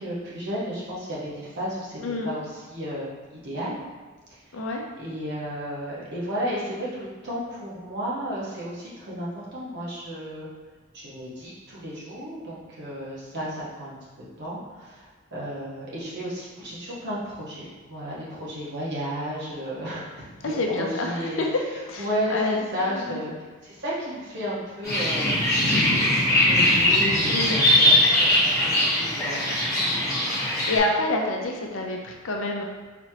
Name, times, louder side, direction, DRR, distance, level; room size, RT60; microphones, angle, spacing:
voice 1, 0.0-3.8 4.3-4.6 5.0-10.5 10.9-14.0 14.4-21.4 22.0-23.3 23.6-25.3 26.3-29.8 30.6-30.7, equal, 55° right, -7 dB, 1.2 m, -33 dB
voice 2, 4.5-4.8 20.4-21.6 21.9-23.2 27.3-27.7 30.4-32.6, left 2 dB, 65° left, 1 dB, 0.6 m, -28 dB
sound 1, 24.8-30.8, left 1 dB, 15° left, 1.1 m, -21 dB
4.2 x 3.0 x 2.8 m, 1.4 s
head